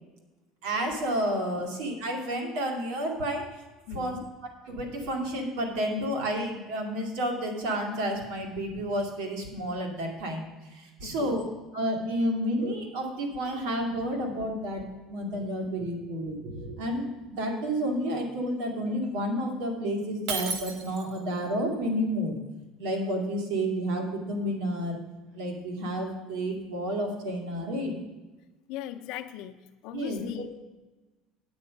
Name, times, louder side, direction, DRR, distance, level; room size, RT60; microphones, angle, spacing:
voice 1, 0.6-3.6 3.9-11.4 11.7-17.1 17.4-22.3 22.8-25.0 25.3-27.9 29.9-30.6, equal, 90° right, 2 dB, 2.3 m, -30 dB
voice 2, 3.9-4.3 11.0-11.4 28.7-29.6 29.8-30.6, left 11 dB, 65° left, 5 dB, 0.5 m, -39 dB
Shatter, 20.3-21.3, right 5 dB, 70° right, 1.1 m, -33 dB
8.8 x 8.6 x 5.2 m, 1.1 s
cardioid pair, 155°, 0 cm